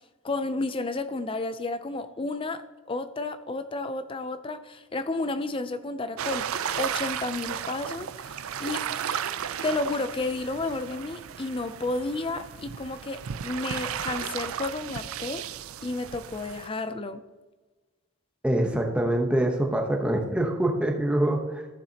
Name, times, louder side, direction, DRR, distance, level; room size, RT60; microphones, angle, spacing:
voice 1, 0.2-2.6 2.9-8.9 9.6-15.5 15.8-17.2, left 2 dB, 25° left, 0.4 m, -32 dB
sound 1, 6.2-16.7, right 8 dB, 80° right, 0.4 m, -34 dB
voice 2, 18.4-21.7, right 1 dB, 5° right, 0.9 m, -25 dB
14.5 x 7.1 x 2.8 m
head